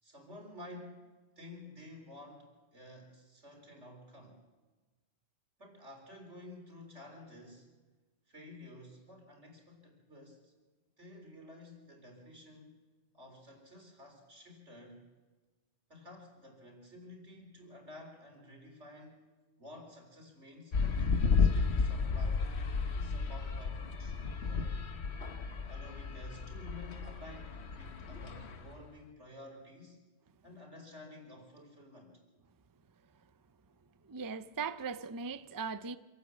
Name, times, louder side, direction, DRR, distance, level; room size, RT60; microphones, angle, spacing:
voice 1, 0.0-1.0 1.4-4.4 5.6-7.7 8.3-10.5 11.0-12.7 13.1-15.1 15.9-19.2 19.6-22.5 22.9-24.8 25.7-30.0 30.4-32.2, left 1 dB, 85° right, 4.3 m, -52 dB
sound 1, 20.7-28.8, left 5 dB, 70° left, 1.3 m, -33 dB
voice 2, 34.0-36.0, right 5 dB, 25° right, 0.5 m, -39 dB
26.0 x 12.5 x 8.3 m
omnidirectional pair, 1.2 m